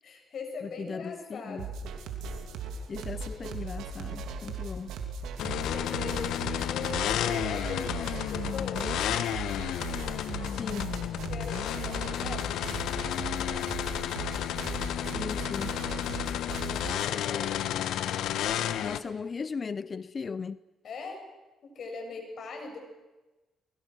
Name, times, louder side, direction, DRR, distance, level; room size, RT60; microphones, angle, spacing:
voice 1, 0.0-1.6 5.3-9.0 11.3-12.5 16.0-17.9 20.8-21.2 21.6-22.8, left 4 dB, 60° left, 7.2 m, -41 dB
voice 2, 0.6-1.7 2.9-5.0 10.6-10.9 15.1-15.8 17.3-17.4 18.8-20.6, left 5 dB, 40° left, 0.7 m, -37 dB
sound 1, 1.6-17.1, right 4 dB, 85° right, 3.0 m, -38 dB
sound 2, 5.4-19.0, left 11 dB, 80° left, 1.2 m, -32 dB
29.5 x 22.0 x 6.4 m
cardioid pair, 90°, 0 cm